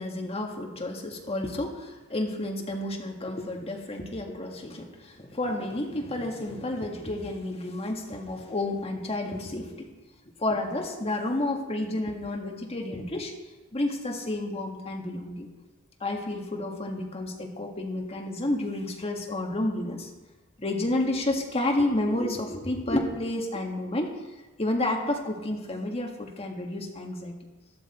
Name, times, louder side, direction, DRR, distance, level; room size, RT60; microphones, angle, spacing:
voice 1, 0.0-9.9 10.4-13.3 13.7-15.5 16.0-20.1 20.6-24.1 24.6-27.4, left 1 dB, 30° left, 1 dB, 1.7 m, -30 dB
12.5 x 12.0 x 4.3 m, 1.1 s
head